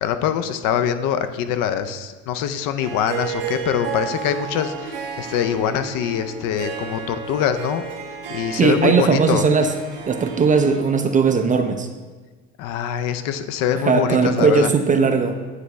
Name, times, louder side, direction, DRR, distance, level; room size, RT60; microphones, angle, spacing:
voice 1, 0.0-7.8 8.3-9.4 12.6-14.7, left 9 dB, 65° left, 10 dB, 0.5 m, -24 dB
Harp, 2.8-10.8, right 6 dB, 80° right, 0.9 m, -33 dB
voice 2, 8.6-9.7 10.1-11.9 13.7-15.4, right 5 dB, 25° right, 7 dB, 0.4 m, -18 dB
9.1 x 3.3 x 3.1 m, 1.3 s
supercardioid pair, 90°, 34 cm